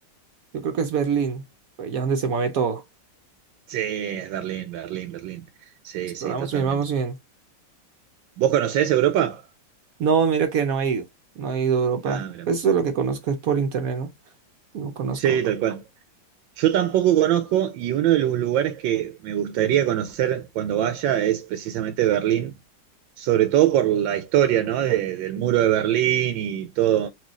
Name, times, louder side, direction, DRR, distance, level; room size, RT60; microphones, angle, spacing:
voice 1, 0.5-1.4 1.8-2.8 6.2-7.1 10.0-11.0 11.4-14.1 14.7-15.4, right 6 dB, 65° right, 0.9 m, -24 dB
voice 2, 3.7-5.4 5.8-6.8 8.4-9.4 12.0-12.5 15.2-15.8 16.6-22.5 23.2-27.1, right 11 dB, 90° right, 1.4 m, -23 dB
4.5 x 2.7 x 3.0 m
omnidirectional pair, 2.0 m